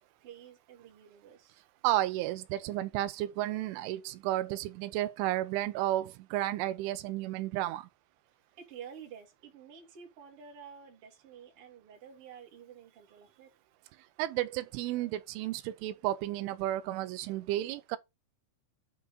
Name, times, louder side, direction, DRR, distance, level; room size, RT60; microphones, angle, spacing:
voice 1, 0.2-1.6 8.3-13.5, right 7 dB, 35° right, 2.8 m, -50 dB
voice 2, 1.8-7.9 14.2-18.0, right 14 dB, 85° right, 3.2 m, -32 dB
9.4 x 6.9 x 4.0 m
omnidirectional pair, 5.5 m